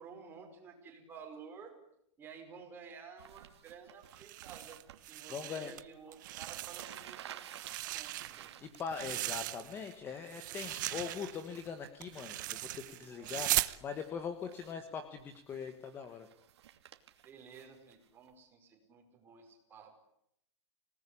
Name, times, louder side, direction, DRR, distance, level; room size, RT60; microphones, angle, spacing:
voice 1, 0.0-1.7 2.2-4.8 5.1-7.6 7.9-8.8 13.1-13.3 17.2-20.0, right 6 dB, 15° right, 2 dB, 5.4 m, -53 dB
sound 1, 3.2-5.0 5.9-6.0 6.2-10.6 11.0-11.9 12.8-13.4 13.7-14.1 14.4-14.8 15.2-18.3, right 11 dB, 70° right, 2.7 m, -53 dB
sound 2, 4.1-5.8 6.1-7.1 7.4-9.9 10.3-13.8, right 17 dB, 45° right, 0.9 m, -38 dB
voice 2, 5.3-5.8 8.6-16.3, left 6 dB, 15° left, 9 dB, 1.4 m, -42 dB
26.5 x 19.0 x 10.0 m, 0.76 s
supercardioid pair, 170°, 15 cm